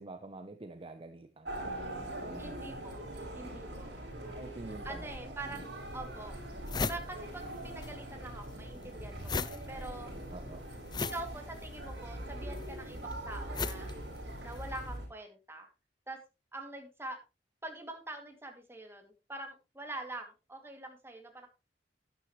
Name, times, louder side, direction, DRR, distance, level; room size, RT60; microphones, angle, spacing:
voice 1, 0.0-2.8 4.2-5.6 10.3-10.7, right 2 dB, 30° right, 9 dB, 0.8 m, -48 dB
sound 1, 1.4-15.1, right 1 dB, 70° right, 6.0 m, -42 dB
voice 2, 2.4-3.0 3.3-3.9 4.7-5.7 5.9-10.1 11.0-13.9 14.4-15.7 16.1-16.2 16.5-17.2 17.6-21.5, right 2 dB, 15° right, 4 dB, 2.3 m, -45 dB
sound 2, 5.4-5.5 6.1-6.2 6.4-14.7, left 4 dB, 25° left, 0.5 m, -38 dB
12.0 x 10.0 x 3.1 m, 0.28 s
head